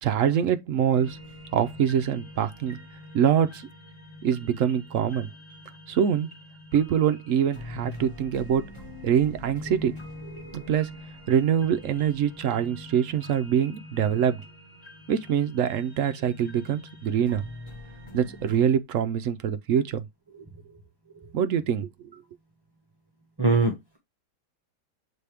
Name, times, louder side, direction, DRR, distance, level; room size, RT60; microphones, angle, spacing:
voice 1, 0.0-1.2 1.5-2.8 3.1-3.7 4.2-5.3 5.9-6.3 6.7-8.6 9.0-9.9 10.5-11.0 11.3-14.4 15.1-17.4 18.1-20.1 21.3-21.9, right 8 dB, 65° right, 0.8 m, -24 dB
sound 1, 0.9-18.6, left 1 dB, 15° left, 3.2 m, -44 dB
voice 2, 10.4-10.7 21.1-21.3 23.4-24.0, right 3 dB, 15° right, 1.4 m, -25 dB
7.0 x 4.1 x 3.4 m
omnidirectional pair, 1.8 m